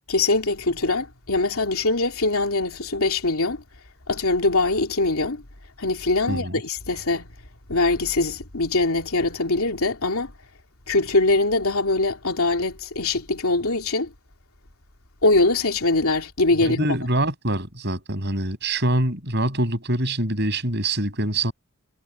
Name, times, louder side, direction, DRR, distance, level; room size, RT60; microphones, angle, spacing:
voice 1, 0.1-3.6 4.1-5.4 5.8-7.3 7.7-10.3 10.9-14.1 15.2-16.9, left 2 dB, 80° left, 3.0 m, -22 dB
voice 2, 16.6-21.5, right 1 dB, 50° right, 7.9 m, -24 dB
head